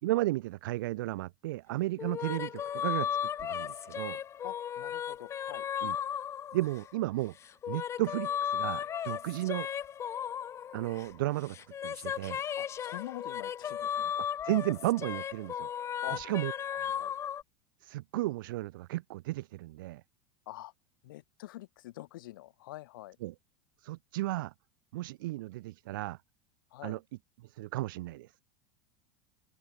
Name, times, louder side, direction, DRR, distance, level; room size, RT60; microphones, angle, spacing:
voice 1, 0.0-4.2 5.8-6.0 6.5-7.3 7.7-9.7 10.7-11.6 11.8-12.4 14.2-15.7 16.1-16.5 17.8-20.0 23.2-23.3 23.8-24.5 24.9-26.2 26.8-27.0 27.4-28.3, right 18 dB, 80° right, 4.6 m, -34 dB
sound 1, 2.0-7.0 7.4-11.2 11.5-17.4, left 9 dB, 25° left, 5.3 m, -35 dB
voice 2, 4.4-5.6 12.6-14.1 16.0-16.2 16.9-17.1 20.5-20.7 21.0-23.2 26.7-27.0, left 16 dB, 85° left, 4.7 m, -45 dB
open air
supercardioid pair, 155°, 11 cm